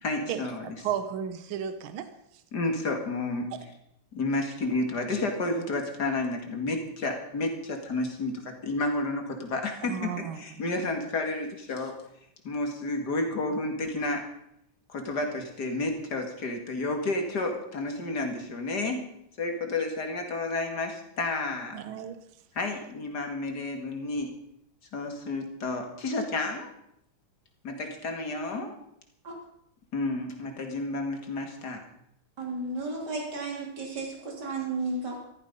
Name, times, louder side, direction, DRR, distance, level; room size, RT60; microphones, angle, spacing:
voice 1, 0.0-0.8 2.5-3.5 4.1-11.9 12.4-14.2 14.9-19.1 19.4-21.8 22.5-24.3 24.9-26.7 27.6-28.7 29.9-31.8, left 2 dB, 50° left, 3 dB, 2.6 m, -31 dB
voice 2, 0.8-2.0 9.9-10.4 21.7-22.2, right 9 dB, 75° right, 10 dB, 1.8 m, -33 dB
voice 3, 32.4-35.2, right 3 dB, 50° right, 0 dB, 4.1 m, -33 dB
14.5 x 14.0 x 5.4 m, 0.77 s
omnidirectional pair, 2.3 m